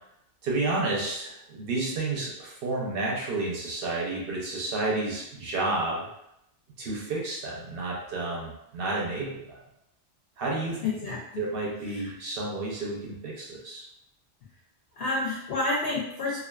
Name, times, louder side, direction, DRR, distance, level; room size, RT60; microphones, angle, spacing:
voice 1, 0.4-6.1 6.8-9.6 10.4-10.8 11.4-13.8, right 2 dB, 55° right, -3 dB, 0.8 m, -31 dB
voice 2, 10.8-11.5 11.9-12.0 15.0-16.4, left 2 dB, 65° left, -5 dB, 0.7 m, -29 dB
2.4 x 2.4 x 2.2 m, 0.82 s
omnidirectional pair, 1.2 m